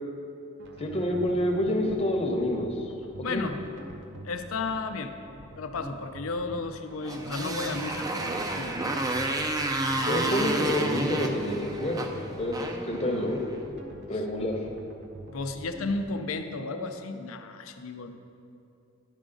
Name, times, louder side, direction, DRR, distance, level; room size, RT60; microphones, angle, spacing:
sound 1, 0.6-16.0, right 1 dB, 60° right, 0.7 m, -46 dB
voice 1, 0.8-2.9 3.3-3.5 10.1-12.1 12.4-12.6 12.9-13.4 14.1-14.6, left 1 dB, 30° left, 1 dB, 0.8 m, -27 dB
voice 2, 3.2-3.6 4.2-5.1 5.6-8.8 15.3-18.2, left 3 dB, 85° left, 7 dB, 0.5 m, -33 dB
Motorcycle, 7.0-13.5, right 2 dB, 15° right, 0.4 m, -31 dB
10.5 x 4.9 x 3.8 m, 2.6 s
head